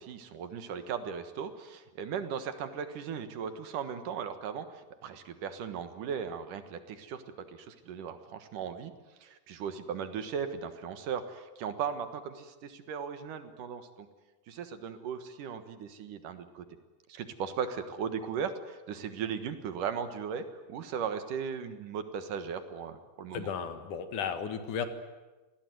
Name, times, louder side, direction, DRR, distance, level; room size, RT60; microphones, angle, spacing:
voice 1, 0.0-7.2 7.5-8.9 9.2-14.1 14.5-16.6 17.1-23.5, right 7 dB, 70° right, 9 dB, 3.0 m, -37 dB
voice 2, 23.3-24.9, left 7 dB, 65° left, 9 dB, 3.0 m, -34 dB
27.0 x 19.0 x 9.4 m, 1.2 s
omnidirectional pair, 4.0 m